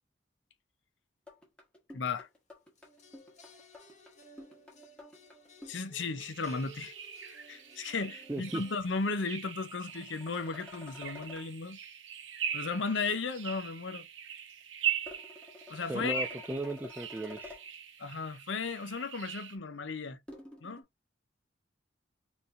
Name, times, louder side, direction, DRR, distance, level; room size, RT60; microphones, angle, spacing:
sound 1, 1.3-5.9 9.6-11.5 15.1-17.7 20.3-20.8, left 2 dB, 5° left, 1.4 m, -50 dB
voice 1, 1.9-2.3 5.7-6.9 7.2-11.8 12.5-14.1 15.7-16.3 18.0-20.2 20.6-20.8, left 4 dB, 75° left, 0.7 m, -35 dB
sound 2, 2.8-8.8, right 1 dB, 40° left, 1.4 m, -57 dB
sound 3, 6.2-19.6, right 9 dB, 80° right, 0.8 m, -41 dB
voice 2, 8.3-8.6 15.9-17.6, right 2 dB, 10° right, 0.3 m, -36 dB
4.4 x 3.4 x 2.6 m
head